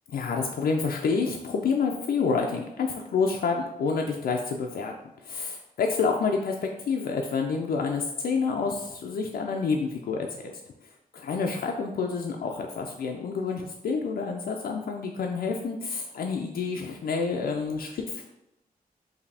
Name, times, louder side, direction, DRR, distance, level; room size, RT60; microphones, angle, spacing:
voice 1, 0.1-4.9 5.2-10.5 11.2-18.2, left 5 dB, 80° left, 1 dB, 0.4 m, -28 dB
4.8 x 2.7 x 3.3 m, 0.86 s
wide cardioid pair, 175°, 15 cm